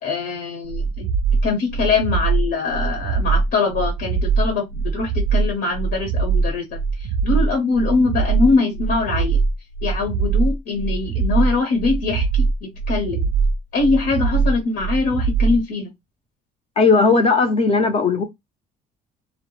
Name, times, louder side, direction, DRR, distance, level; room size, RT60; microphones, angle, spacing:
voice 1, 0.0-1.1 1.4-9.4 9.8-13.3 13.7-15.9, left 4 dB, 75° left, 0.9 m, -22 dB
sound 1, 0.7-15.6, right 5 dB, 65° right, 0.4 m, -21 dB
voice 2, 16.8-18.2, left 4 dB, 35° left, 0.5 m, -16 dB
2.0 x 2.0 x 2.9 m
cardioid pair, 110°, 17 cm